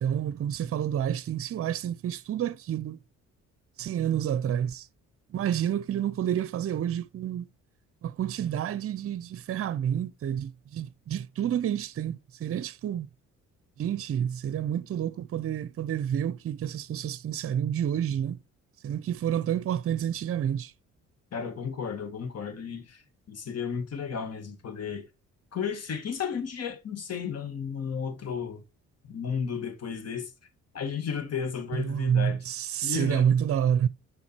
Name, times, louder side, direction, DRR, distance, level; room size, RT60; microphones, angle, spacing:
voice 1, 0.0-3.0 3.8-4.9 5.3-7.4 8.0-13.1 13.8-18.4 18.8-20.7 31.7-33.9, right 9 dB, 50° right, 0.7 m, -29 dB
voice 2, 21.3-23.0 23.3-25.1 25.5-28.6 29.0-30.3 30.7-32.4 32.8-33.3, left 6 dB, 55° left, 2.1 m, -33 dB
7.0 x 5.0 x 4.5 m
cardioid pair, 90°, 30 cm